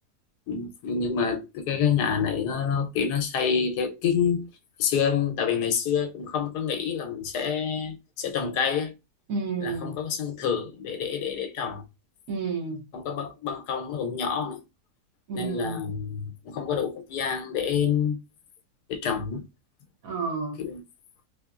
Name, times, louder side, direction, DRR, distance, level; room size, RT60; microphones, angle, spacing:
voice 1, 0.5-4.5 4.8-8.9 9.6-11.8 12.9-14.6 15.3-18.2 18.9-19.4 20.6-20.8, left 7 dB, 75° left, 1.2 m, -27 dB
voice 2, 9.3-10.0 12.3-12.8 15.3-15.9 20.0-20.6, right 4 dB, 60° right, 1.3 m, -31 dB
4.1 x 2.8 x 2.4 m
omnidirectional pair, 1.7 m